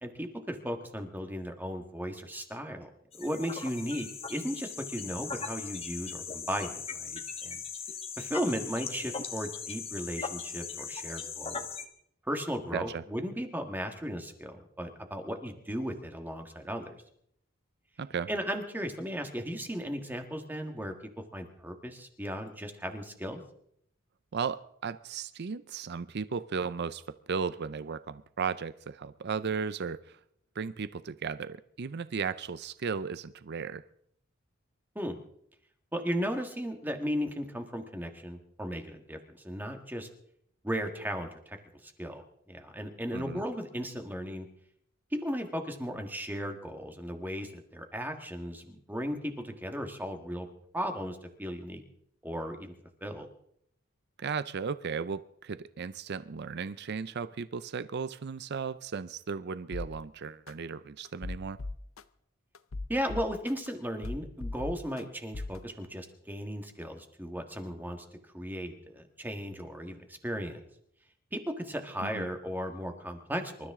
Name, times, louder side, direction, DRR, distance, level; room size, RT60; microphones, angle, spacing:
voice 1, 0.0-7.6 8.2-11.6 12.3-16.9 18.3-20.9 21.3-23.4 34.9-35.2 35.9-40.1 40.6-41.6 41.8-44.5 45.1-50.5 50.7-51.8 52.2-52.7 53.0-53.3 62.9-68.0 68.3-70.6 71.3-73.7, equal, 10° right, 5 dB, 1.7 m, -36 dB
sound 1, 3.1-11.8, left 6 dB, 30° left, 1.5 m, -39 dB
voice 2, 12.7-13.0 18.0-18.3 24.3-27.0 27.3-30.2 30.6-33.8 43.1-43.4 54.2-61.6 72.0-72.3, right 5 dB, 55° right, 15 dB, 0.5 m, -35 dB
sound 2, 59.7-59.9 60.5-60.6 61.1-62.0 62.6-63.7 64.0-65.0 65.3-65.6, left 2 dB, 75° left, 0.7 m, -37 dB
26.5 x 13.0 x 3.7 m, 0.69 s
head